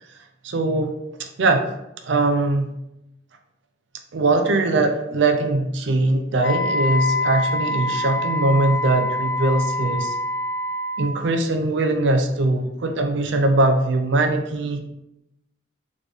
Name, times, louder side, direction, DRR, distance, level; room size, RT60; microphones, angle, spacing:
voice 1, 0.4-0.9 1.2-1.7 2.0-2.7 4.1-10.1 11.0-14.8, right 2 dB, 60° right, 5 dB, 0.4 m, -21 dB
Wind instrument woodwind instrument, 6.4-11.2, left 2 dB, 75° left, 0.7 m, -25 dB
4.2 x 3.1 x 3.3 m, 0.86 s
head